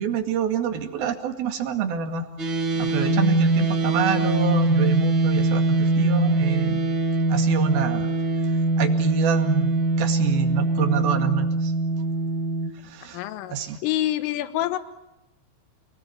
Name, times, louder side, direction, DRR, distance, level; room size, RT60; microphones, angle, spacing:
voice 1, 0.0-2.3 2.8-6.9 7.3-8.1 8.8-9.7 10.0-11.7 12.8-13.2 13.5-13.8, right 6 dB, 55° right, 5 dB, 3.6 m, -26 dB
sound 1, 2.4-12.7, right 2 dB, 25° right, 3.7 m, -22 dB
voice 2, 13.1-13.6 13.8-14.8, left 14 dB, 80° left, 11 dB, 3.8 m, -26 dB
29.0 x 20.5 x 9.4 m, 0.90 s
omnidirectional pair, 5.7 m